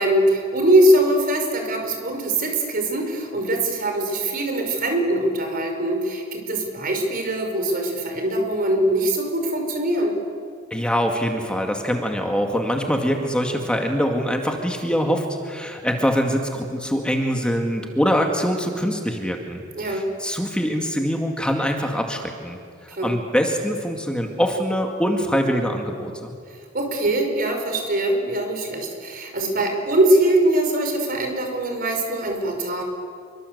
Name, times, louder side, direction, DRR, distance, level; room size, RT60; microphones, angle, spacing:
voice 1, 0.0-10.1 19.7-20.1 22.9-23.1 26.7-32.8, right 1 dB, 50° right, 4 dB, 5.2 m, -22 dB
voice 2, 10.7-22.6 23.0-26.3, equal, 5° left, 3 dB, 2.1 m, -24 dB
27.5 x 24.0 x 8.1 m, 2.2 s
head